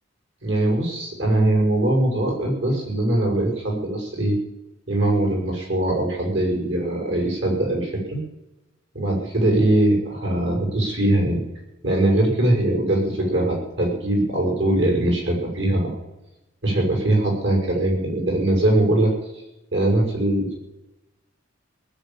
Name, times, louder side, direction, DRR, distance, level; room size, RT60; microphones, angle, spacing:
voice 1, 0.4-4.4 4.9-8.2 8.9-11.4 11.8-15.9 16.6-19.1 19.7-20.6, right 1 dB, 60° right, 1 dB, 6.2 m, -21 dB
19.0 x 9.0 x 7.3 m, 0.96 s
head